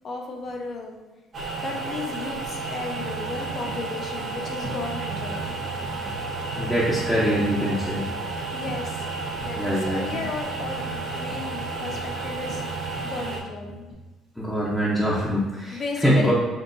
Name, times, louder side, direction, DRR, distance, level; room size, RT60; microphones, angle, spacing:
voice 1, 0.0-1.0 1.6-5.4 8.5-9.1 9.4-13.7 15.7-16.3, left 3 dB, 45° left, 1 dB, 0.8 m, -34 dB
sound 1, 1.3-13.4, right 4 dB, 45° right, 1.4 m, -32 dB
sound 2, 2.9-13.9, right 1 dB, 70° right, 1.4 m, -39 dB
voice 2, 6.6-8.0 9.5-10.0 14.4-16.3, equal, 5° left, -8 dB, 0.9 m, -23 dB
5.3 x 2.6 x 2.7 m, 1.2 s
cardioid pair, 110°, 0 cm